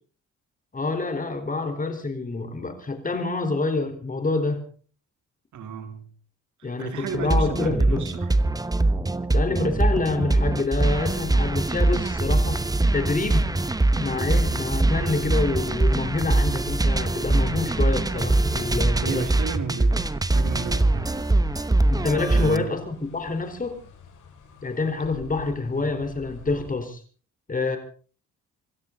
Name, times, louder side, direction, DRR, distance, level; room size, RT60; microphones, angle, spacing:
voice 1, 0.7-4.7 6.6-8.1 9.3-12.6 12.9-13.5 14.0-19.3 21.9-23.8 24.6-27.0 27.5-27.8, left 3 dB, 25° left, 7 dB, 4.5 m, -27 dB
voice 2, 5.5-6.1 6.6-8.3 19.0-21.1 22.3-22.7, right 6 dB, 75° right, 6 dB, 3.6 m, -33 dB
sound 1, 7.1-22.6, right 2 dB, 10° right, 1.1 m, -23 dB
sound 2, 10.8-26.8, left 5 dB, 85° left, 5.9 m, -49 dB
26.5 x 13.5 x 4.0 m, 0.41 s
cardioid pair, 90°, 30 cm